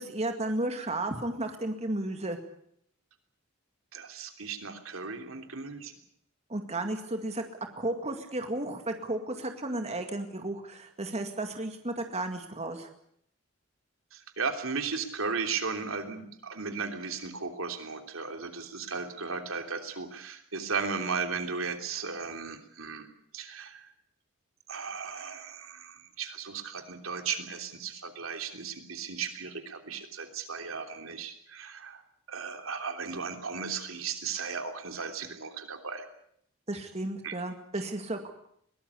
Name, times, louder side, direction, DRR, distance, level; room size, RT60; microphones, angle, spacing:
voice 1, 0.0-2.4 6.5-7.4 7.8-12.9 36.7-38.3, right 2 dB, 30° right, 5 dB, 2.1 m, -33 dB
voice 2, 3.9-5.9 14.1-23.1 23.3-23.9 24.7-32.0 32.3-36.1 37.2-37.4, right 5 dB, 75° right, 6 dB, 3.2 m, -36 dB
22.5 x 18.5 x 8.4 m, 0.68 s
head